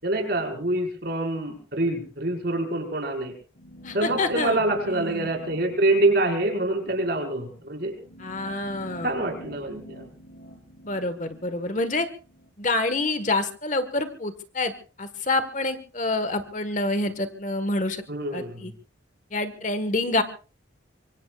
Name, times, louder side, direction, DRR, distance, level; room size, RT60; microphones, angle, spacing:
voice 1, 0.0-3.3 3.9-7.9 9.0-10.0 18.1-18.7, right 2 dB, 55° right, 3 dB, 5.0 m, -26 dB
sound 1, 3.5-12.5, equal, 60° left, 5.4 m, -46 dB
voice 2, 3.8-4.6 4.9-5.3 8.2-9.1 10.8-12.1 12.6-14.7 15.0-18.0 18.3-18.7 19.3-20.2, left 2 dB, 40° left, 10 dB, 1.4 m, -27 dB
25.0 x 24.5 x 2.4 m, 0.36 s
head